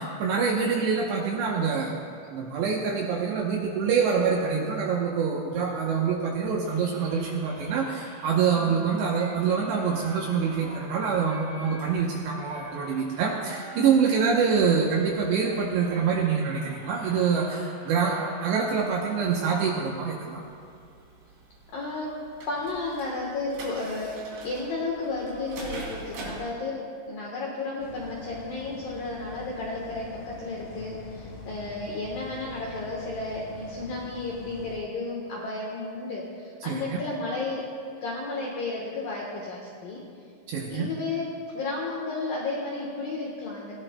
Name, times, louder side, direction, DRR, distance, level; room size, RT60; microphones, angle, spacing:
voice 1, 0.0-2.0 2.3-20.4 36.6-37.0 40.5-40.9, right 6 dB, 75° right, -1 dB, 2.6 m, -25 dB
sound 1, 6.6-20.2, right 1 dB, 30° right, 2.7 m, -46 dB
sound 2, 20.3-26.5, right 3 dB, 60° right, 4.6 m, -43 dB
voice 2, 21.7-22.2 22.5-37.6 38.0-40.0 40.7-43.7, left 3 dB, 75° left, -3 dB, 2.0 m, -33 dB
sound 3, 27.8-34.8, left 2 dB, 55° left, 2.4 m, -44 dB
20.5 x 17.5 x 2.2 m, 2.3 s
omnidirectional pair, 5.9 m